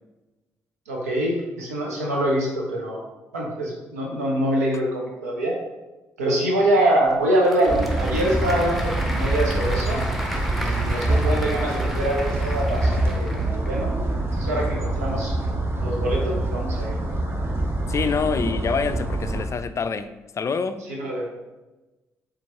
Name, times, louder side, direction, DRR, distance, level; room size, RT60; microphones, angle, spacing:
voice 1, 0.9-3.0 3.3-5.6 6.2-10.0 10.6-13.9 14.3-15.3 15.8-16.9 20.9-21.3, right 1 dB, 90° right, 0.7 m, -24 dB
Applause / Crowd, 7.1-13.8, equal, ahead, 0.8 m, -34 dB
sound 1, 7.7-19.5, right 1 dB, 30° right, 0.8 m, -25 dB
voice 2, 17.9-20.8, left 5 dB, 40° left, 0.3 m, -26 dB
4.4 x 3.5 x 3.0 m
hypercardioid pair, 40°, 8 cm